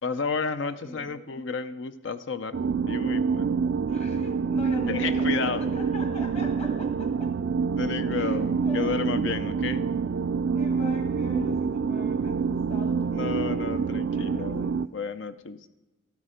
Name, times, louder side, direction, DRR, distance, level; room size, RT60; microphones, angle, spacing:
voice 1, 0.0-3.5 4.9-5.6 7.0-7.1 7.8-9.8 13.1-15.7, left 5 dB, 70° left, 13 dB, 0.6 m, -32 dB
voice 2, 0.7-1.2 3.9-7.4 8.1-9.3 10.5-13.8 14.1-14.8, equal, 35° left, 5 dB, 1.8 m, -41 dB
sound 1, 2.5-14.9, right 5 dB, 65° right, 0.3 m, -27 dB
14.0 x 12.0 x 5.0 m, 1.1 s
head